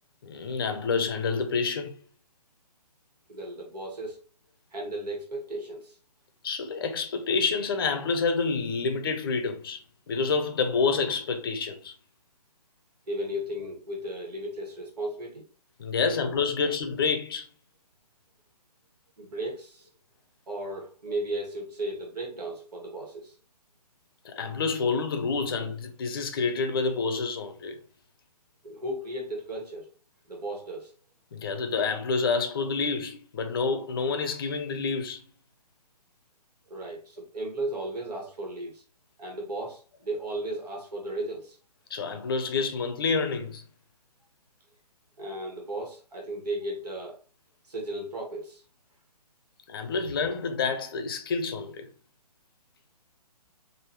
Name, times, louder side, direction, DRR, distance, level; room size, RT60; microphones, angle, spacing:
voice 1, 0.2-1.9 6.4-11.9 15.8-17.5 24.2-27.8 31.3-35.2 41.9-43.6 49.7-51.9, left 4 dB, 35° left, 0.6 m, -28 dB
voice 2, 3.3-4.2 4.7-6.0 13.1-15.4 16.1-16.2 19.2-19.9 20.5-23.4 28.6-29.9 30.3-30.9 36.7-38.8 39.2-41.6 45.2-47.2 47.6-48.6, right 1 dB, 70° right, 1.8 m, -35 dB
4.8 x 2.7 x 3.0 m
hypercardioid pair, 160°, 21 cm